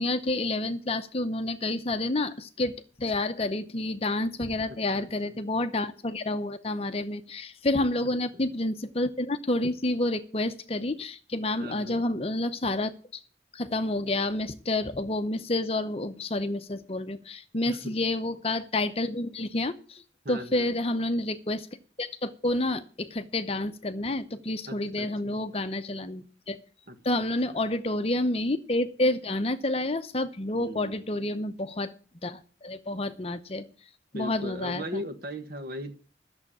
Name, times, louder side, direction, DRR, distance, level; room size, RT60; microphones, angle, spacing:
voice 1, 0.0-12.9 13.5-20.0 20.3-21.7 22.0-26.6 27.0-31.9 32.2-33.7 34.1-35.0, left 2 dB, 30° left, 11 dB, 0.7 m, -29 dB
voice 2, 8.0-8.4 11.6-12.0 17.7-18.0 20.3-20.8 24.7-25.4 26.9-27.6 30.5-31.0 34.1-36.0, equal, 50° right, 7 dB, 1.6 m, -39 dB
11.5 x 7.1 x 8.5 m, 0.40 s
head